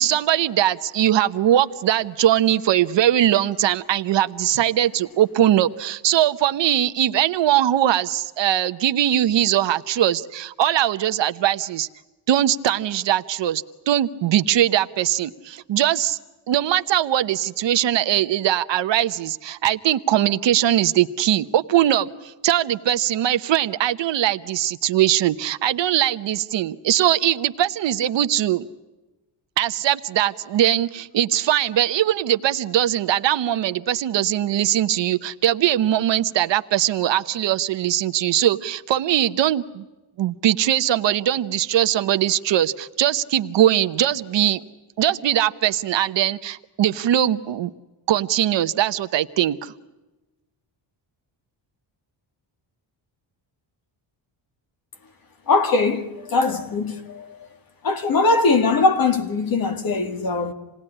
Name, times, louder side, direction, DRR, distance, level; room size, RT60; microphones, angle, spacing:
voice 1, 0.0-11.9 12.3-16.2 16.5-28.7 29.6-39.8 40.2-44.6 45.0-47.7 48.1-49.7, right 12 dB, 60° right, 1.0 m, -21 dB
voice 2, 55.5-57.4 57.8-60.5, left 3 dB, 45° left, 2.2 m, -21 dB
28.0 x 19.0 x 9.9 m
cardioid pair, 175°, 49 cm